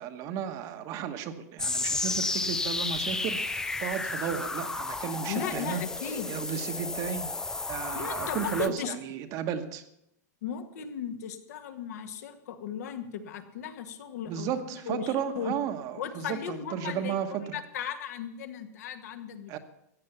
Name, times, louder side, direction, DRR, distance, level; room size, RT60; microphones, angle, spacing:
voice 1, 0.0-5.8 6.3-7.4 7.7-9.8 14.3-17.6 19.5-19.6, right 8 dB, 40° right, 8 dB, 1.2 m, -34 dB
sound 1, 1.6-8.7, left 3 dB, 5° left, 0.5 m, -32 dB
voice 2, 5.3-6.3 7.9-9.0 10.4-15.1 15.3-15.5 16.0-19.6, left 8 dB, 65° left, 7 dB, 1.7 m, -36 dB
15.0 x 8.6 x 7.1 m, 0.79 s
hypercardioid pair, 135°, 9 cm